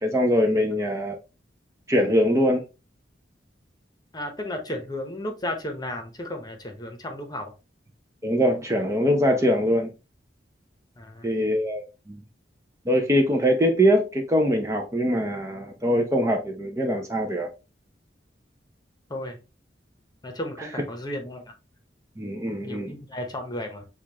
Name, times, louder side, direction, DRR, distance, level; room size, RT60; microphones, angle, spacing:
voice 1, 0.0-1.2 1.9-2.6 8.2-9.9 11.2-12.2 12.9-17.5 22.2-23.0, equal, 15° right, 0.6 m, -22 dB
voice 2, 4.1-7.5 11.0-11.3 19.1-19.4 20.2-21.4 22.6-23.8, left 1 dB, 25° left, 0.9 m, -34 dB
6.5 x 2.4 x 2.9 m
head